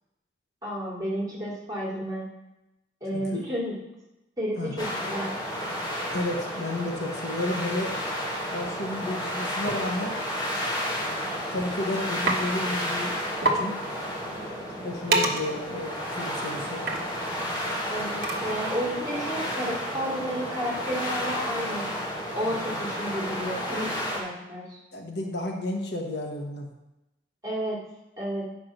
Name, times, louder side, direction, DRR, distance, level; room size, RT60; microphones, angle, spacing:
voice 1, 0.6-2.3 3.0-3.7 4.4-5.3 17.9-21.9 22.3-24.8 27.4-27.8 28.2-28.5, equal, 20° right, -5 dB, 2.7 m, -31 dB
voice 2, 3.1-3.5 4.5-4.7 6.1-8.0 8.5-10.2 11.5-13.2 13.4-13.8 14.8-16.8 22.4-22.9 24.9-26.7, left 1 dB, 65° left, 2 dB, 1.2 m, -32 dB
sound 1, 4.8-24.2, equal, 25° left, 1.7 m, -32 dB
sound 2, 9.7-9.8 10.9-11.1 11.4-11.8 12.3-12.4 12.7-12.8 13.1-13.2 13.4-13.6 14.1-18.8, right 2 dB, 50° right, 1.1 m, -29 dB
9.1 x 4.8 x 6.0 m, 0.95 s
head